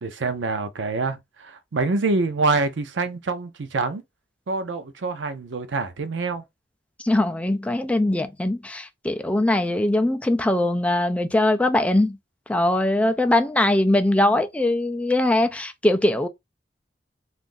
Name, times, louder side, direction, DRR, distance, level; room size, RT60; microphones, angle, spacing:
voice 1, 0.0-4.0 4.5-6.4, right 3 dB, 90° right, 0.6 m, -26 dB
voice 2, 7.0-12.2 12.5-16.3, left 1 dB, 5° left, 0.3 m, -21 dB
2.6 x 2.5 x 3.7 m
head